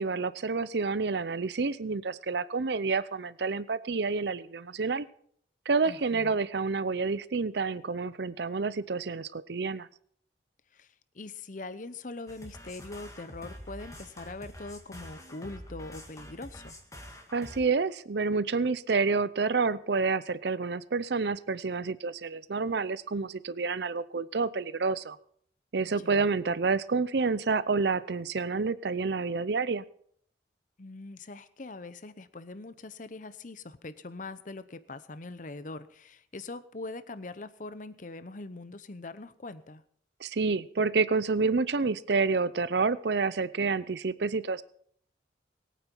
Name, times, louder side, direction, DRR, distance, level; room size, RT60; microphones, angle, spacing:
voice 1, 0.0-5.1 5.7-9.9 17.3-25.2 25.7-29.8 40.2-44.6, right 4 dB, 65° right, 17 dB, 0.6 m, -29 dB
voice 2, 5.8-6.4 10.7-10.9 11.1-16.7 25.9-26.3 30.8-39.8, left 2 dB, 45° left, 13 dB, 0.8 m, -42 dB
sound 1, 12.3-17.6, equal, 20° left, 1.9 m, -46 dB
21.5 x 9.2 x 4.5 m, 0.63 s
head